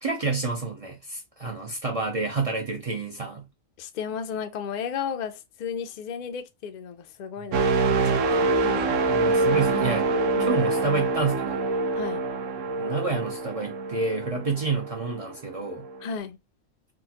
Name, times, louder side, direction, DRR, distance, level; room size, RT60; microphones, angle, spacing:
voice 1, 0.0-3.5 9.1-10.1 10.4-11.7 12.8-15.9, right 4 dB, 55° right, 0.4 m, -29 dB
voice 2, 3.8-8.4 11.9-12.3 16.0-16.4, left 7 dB, 65° left, 0.4 m, -34 dB
sound 1, 7.5-15.3 15.8-16.0, right 3 dB, 75° right, 1.0 m, -25 dB
sound 2, 7.9-14.5, left 10 dB, 90° left, 1.2 m, -42 dB
3.7 x 2.2 x 2.8 m
omnidirectional pair, 1.3 m